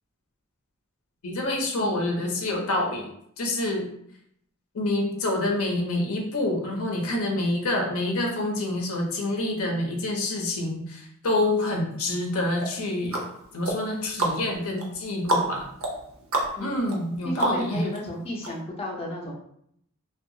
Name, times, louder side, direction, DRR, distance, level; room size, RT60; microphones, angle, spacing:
voice 1, 1.2-3.1 3.4-3.9 4.7-13.2 13.5-15.7 16.6-17.9, left 1 dB, 75° left, 1 dB, 0.6 m, -27 dB
sound 1, 12.6-18.0 18.4-18.5, right 2 dB, 70° right, 0.6 m, -30 dB
voice 2, 16.6-16.9 17.2-19.3, left 1 dB, 25° left, -3 dB, 0.5 m, -33 dB
2.6 x 2.3 x 2.6 m, 0.69 s
head